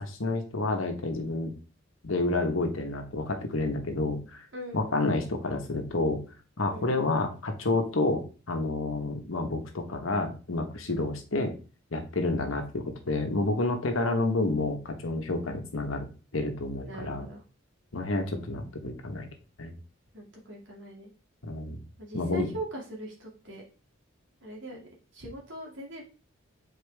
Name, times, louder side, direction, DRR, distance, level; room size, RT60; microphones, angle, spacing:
voice 1, 0.0-1.5 2.0-4.4 4.7-6.2 6.6-11.5 11.9-16.1 16.3-17.3 17.9-19.3 19.6-19.7 21.4-21.8 22.1-22.5, left 2 dB, 85° left, 4 dB, 1.2 m, -29 dB
voice 2, 4.5-5.0 6.6-6.9 16.8-17.4 20.1-21.1 22.0-23.6 24.4-24.8 25.1-26.0, right 1 dB, 70° right, -1 dB, 2.4 m, -40 dB
8.2 x 4.4 x 3.4 m, 0.35 s
head